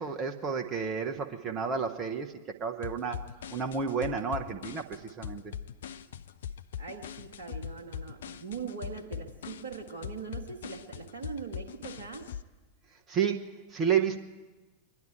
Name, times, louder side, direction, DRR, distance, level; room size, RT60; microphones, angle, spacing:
voice 1, 0.0-3.2 3.5-5.5 13.1-14.2, right 6 dB, 25° right, 4 dB, 0.9 m, -31 dB
sound 1, 2.8-12.4, left 9 dB, 60° left, 0.4 m, -41 dB
voice 2, 6.8-12.3, right 5 dB, 60° right, 0 dB, 1.1 m, -41 dB
24.5 x 11.0 x 4.6 m, 1.2 s
figure-of-eight pair, 90°, 0 cm